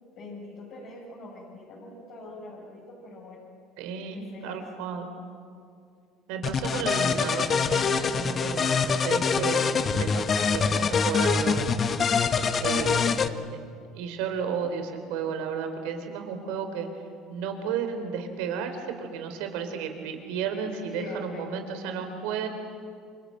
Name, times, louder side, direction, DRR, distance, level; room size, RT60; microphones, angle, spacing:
voice 1, 0.1-3.5 4.1-4.7 12.7-13.1 20.9-21.6, left 2 dB, 60° left, -5 dB, 7.2 m, -43 dB
voice 2, 3.8-5.1 6.3-11.7 12.6-13.1 13.9-16.9 17.3-22.5, right 7 dB, 75° right, 6 dB, 3.9 m, -33 dB
sound 1, 6.4-13.3, left 5 dB, 40° left, 1.4 m, -24 dB
29.0 x 25.0 x 7.9 m, 2.3 s
hypercardioid pair, 75°, 0 cm